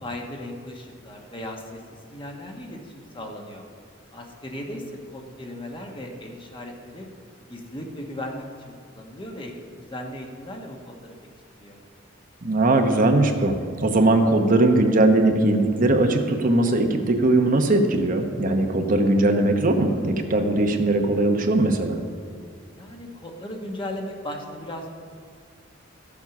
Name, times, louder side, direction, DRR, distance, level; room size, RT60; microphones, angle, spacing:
voice 1, 0.0-1.8 2.1-3.6 4.1-7.1 7.5-9.5 9.9-11.1 11.6-11.8 22.8-24.9, left 1 dB, 25° left, 1 dB, 1.3 m, -37 dB
voice 2, 12.4-22.0, right 2 dB, 45° right, 4 dB, 0.9 m, -20 dB
14.0 x 7.3 x 5.9 m, 2.1 s
head